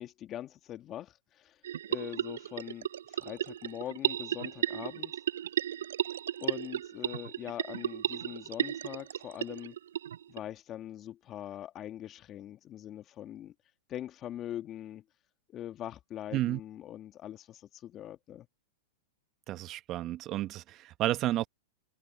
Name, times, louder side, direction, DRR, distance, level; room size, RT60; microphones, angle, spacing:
voice 1, 0.0-1.6 1.9-5.1 6.4-9.8 10.3-13.5 13.9-15.0 15.5-18.5, left 11 dB, 30° left, 1.7 m, -42 dB
sound 1, 1.6-10.4, right 10 dB, 80° right, 0.3 m, -34 dB
voice 2, 19.5-21.5, right 14 dB, 35° right, 1.0 m, -31 dB
hypercardioid pair, 125°, 0 cm